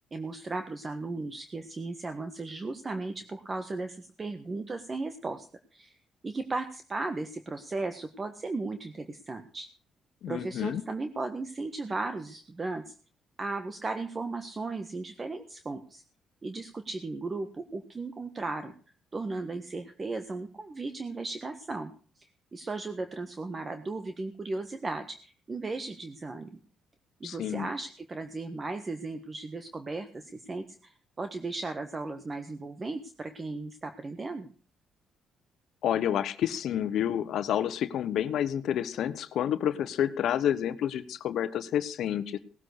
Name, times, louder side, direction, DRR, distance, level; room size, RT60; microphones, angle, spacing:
voice 1, 0.1-5.5 5.7-6.0 6.2-9.7 10.3-12.9 13.4-16.0 16.4-18.7 19.1-26.5 27.2-34.5, right 3 dB, 30° right, 8 dB, 1.4 m, -36 dB
voice 2, 10.2-10.8 27.2-27.7 35.8-42.4, left 10 dB, 75° left, 12 dB, 1.0 m, -29 dB
18.5 x 7.7 x 6.5 m, 0.42 s
cardioid pair, 90°, 0 cm